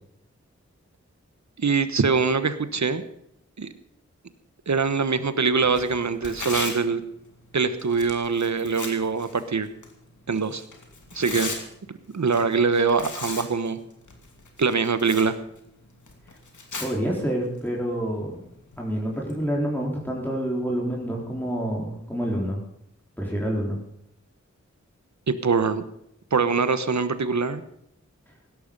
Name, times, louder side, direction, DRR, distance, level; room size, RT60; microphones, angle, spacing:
voice 1, 1.6-3.0 3.6-3.7 4.7-7.0 7.5-9.7 10.3-10.6 11.1-11.5 12.1-13.8 14.6-15.3 25.3-25.8 26.3-27.6, right 5 dB, 70° right, 12 dB, 1.2 m, -23 dB
Tearing, 5.5-19.4, left 3 dB, 90° left, 2.6 m, -40 dB
voice 2, 16.8-18.4 18.8-22.6 23.2-23.8, equal, 5° left, -2 dB, 4.0 m, -27 dB
17.0 x 12.5 x 5.4 m, 0.75 s
cardioid pair, 40°, 29 cm